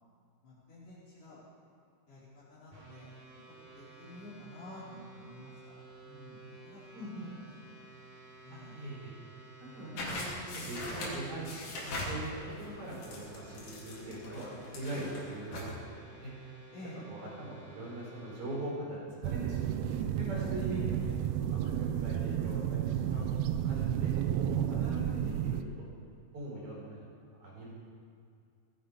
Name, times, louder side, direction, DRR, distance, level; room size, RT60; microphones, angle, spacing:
voice 1, 0.4-1.4 2.1-3.1 3.7-6.8 7.2-7.7 8.4-8.8 9.6-10.0 15.0-15.3 16.7-17.0 24.7-25.2, left 1 dB, 55° left, -9 dB, 6.5 m, -51 dB
sound 1, 2.7-18.7, right 3 dB, 10° right, 3.7 m, -54 dB
voice 2, 6.9-7.3 8.5-9.1 9.7-11.5 11.7-12.2 12.6-15.7 16.1-16.3 17.1-24.1 24.5-25.6 26.3-27.0 27.4-27.7, right 1 dB, 35° right, -5 dB, 5.1 m, -41 dB
sound 2, 10.0-15.7, left 1 dB, 80° left, 5.1 m, -41 dB
sound 3, 19.2-25.6, right 10 dB, 80° right, 2.4 m, -32 dB
20.0 x 11.5 x 5.0 m, 2.3 s
omnidirectional pair, 4.7 m